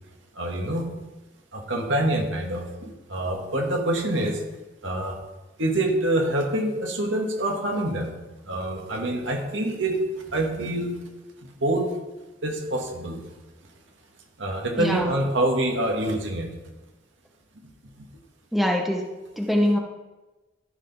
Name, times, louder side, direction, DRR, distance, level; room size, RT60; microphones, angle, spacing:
voice 1, 0.4-0.9 1.5-4.4 4.8-5.2 5.6-8.1 8.5-10.0 10.3-10.9 11.6-11.8 12.4-13.2 14.4-16.5, right 1 dB, 75° right, 1 dB, 2.0 m, -26 dB
voice 2, 14.7-15.1 18.5-19.0 19.4-19.8, left 1 dB, ahead, 0 dB, 1.0 m, -23 dB
13.5 x 5.1 x 5.7 m, 1.1 s
head